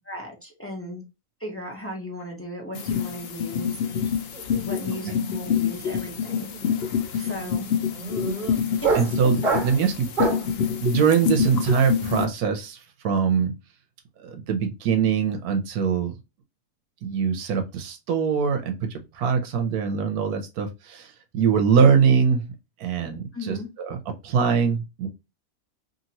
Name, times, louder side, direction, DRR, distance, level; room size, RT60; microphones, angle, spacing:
voice 1, 0.1-1.0 1.4-4.0 4.5-6.8 7.1-7.7 8.8-8.9 9.7-9.9 23.3-23.7, left 1 dB, 20° left, -1 dB, 0.4 m, -36 dB
sound 1, 2.7-12.2, left 7 dB, 75° left, 0.5 m, -27 dB
sound 2, 3.8-4.1 4.3-10.6, right 4 dB, 35° right, 1.2 m, -29 dB
voice 2, 8.9-10.1 10.8-13.5 14.2-16.1 17.0-22.4 22.8-24.0 24.2-25.1, right 6 dB, 80° right, 5 dB, 1.1 m, -23 dB
2.8 x 2.7 x 2.8 m, 0.24 s
omnidirectional pair, 1.6 m